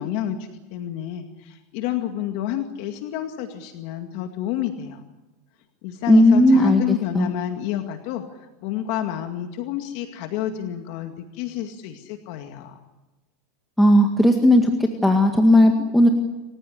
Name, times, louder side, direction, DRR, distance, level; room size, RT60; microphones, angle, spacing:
voice 1, 0.0-5.0 5.8-12.8, left 11 dB, 55° left, 5 dB, 2.1 m, -30 dB
voice 2, 6.1-6.8 7.1-7.3 13.8-14.7 15.0-16.1, left 1 dB, ahead, 2 dB, 1.9 m, -15 dB
28.5 x 15.5 x 9.9 m, 1.1 s
supercardioid pair, 150°, 0 cm